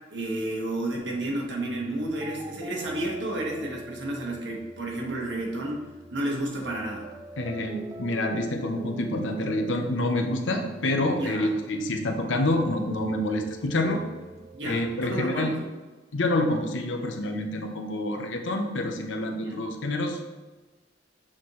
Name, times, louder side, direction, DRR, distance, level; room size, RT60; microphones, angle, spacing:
voice 1, 0.1-7.1 11.2-11.5 14.5-15.7 19.4-19.6, right 1 dB, 70° right, -1 dB, 1.5 m, -31 dB
sound 1, 0.9-14.9, right 1 dB, 20° right, 0.3 m, -43 dB
voice 2, 7.4-14.0 14.6-15.5 16.1-20.2, left 1 dB, 85° left, 4 dB, 0.8 m, -27 dB
7.4 x 4.3 x 3.1 m, 1.3 s
head